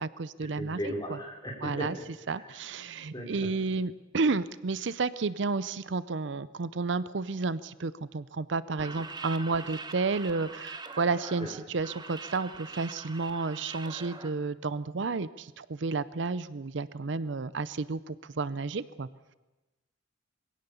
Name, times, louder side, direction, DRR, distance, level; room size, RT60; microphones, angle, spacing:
voice 1, 0.0-1.2 1.6-2.0 2.3-19.1, right 4 dB, 65° right, 17 dB, 0.6 m, -31 dB
voice 2, 0.6-1.9 2.4-2.5 3.1-3.5 11.4-11.5, equal, 20° left, 0 dB, 4.5 m, -36 dB
sound 1, 8.8-14.3, right 3 dB, 20° right, 1.2 m, -43 dB
22.5 x 17.0 x 7.0 m, 1.1 s
head